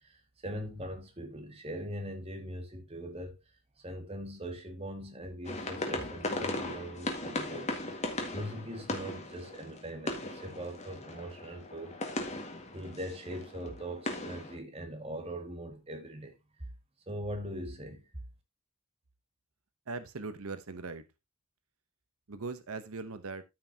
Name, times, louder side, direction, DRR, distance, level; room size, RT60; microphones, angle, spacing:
voice 1, 0.0-3.4 3.8-8.1 8.3-12.2 12.7-16.6 17.1-18.1, equal, 25° right, 1.9 m, -41 dB
sound 1, 5.4-14.6, left 2 dB, 30° left, 1.9 m, -38 dB
voice 2, 19.9-21.0 22.3-23.4, right 3 dB, 90° right, 0.9 m, -40 dB
13.5 x 5.8 x 2.8 m
head